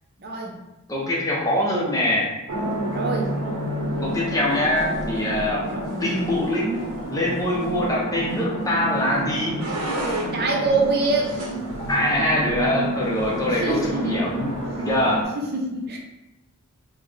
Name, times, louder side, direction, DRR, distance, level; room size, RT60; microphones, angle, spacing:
voice 1, 0.2-0.6 2.9-3.3 5.7-5.9 10.3-11.3 13.5-14.3 15.4-16.0, right 3 dB, 45° right, 0 dB, 0.6 m, -24 dB
voice 2, 0.9-2.3 4.0-5.7 6.0-6.8 7.1-9.6 11.9-15.3, left 1 dB, 15° left, -4 dB, 0.6 m, -24 dB
sound 1, 2.5-15.2, right 1 dB, 85° right, 0.7 m, -29 dB
3.9 x 2.1 x 3.2 m, 0.95 s
head